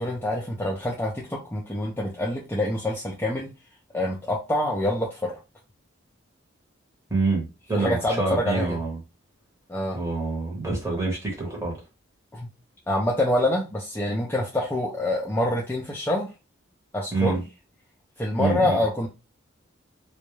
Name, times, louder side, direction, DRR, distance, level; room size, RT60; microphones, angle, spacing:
voice 1, 0.0-3.5 3.9-5.4 7.7-8.8 9.7-10.0 12.3-12.5 12.9-16.3 16.9-17.4 18.2-19.1, left 1 dB, 10° left, 0.3 m, -26 dB
voice 2, 7.1-9.0 9.9-11.8 17.1-17.4 18.4-18.8, right 3 dB, 15° right, 0.8 m, -26 dB
2.2 x 2.0 x 3.0 m
head